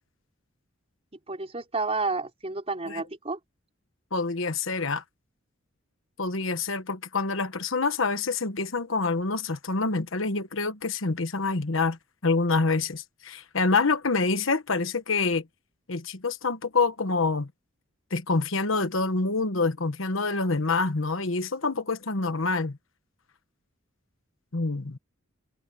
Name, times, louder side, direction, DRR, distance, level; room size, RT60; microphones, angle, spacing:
voice 1, 1.3-3.4, right 3 dB, 30° right, 4.3 m, -30 dB
voice 2, 4.1-5.0 6.2-12.0 12.2-15.5 15.9-17.5 18.1-22.8 24.5-25.0, left 3 dB, 65° left, 1.2 m, -26 dB
head